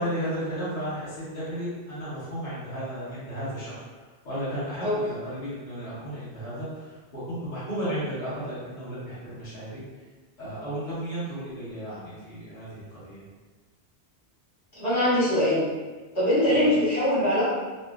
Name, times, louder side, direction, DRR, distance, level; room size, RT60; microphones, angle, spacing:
voice 1, 0.0-3.8 4.2-9.8 10.4-13.2 16.5-16.7, equal, 45° left, -13 dB, 1.4 m, -34 dB
voice 2, 14.7-15.7 16.1-17.6, left 1 dB, 75° left, -12 dB, 1.9 m, -22 dB
4.0 x 2.1 x 2.3 m, 1.3 s
omnidirectional pair, 1.1 m